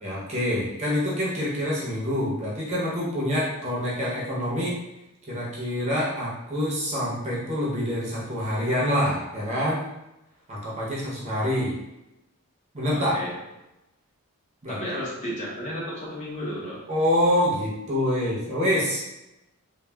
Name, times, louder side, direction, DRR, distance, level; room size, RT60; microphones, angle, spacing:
voice 1, 0.0-4.8 5.3-9.8 10.5-11.7 12.7-13.2 14.6-14.8 16.9-19.0, equal, 30° right, -6 dB, 0.7 m, -26 dB
voice 2, 12.9-13.3 14.7-16.8, equal, 35° left, -6 dB, 0.8 m, -33 dB
3.2 x 2.2 x 2.2 m, 0.94 s
head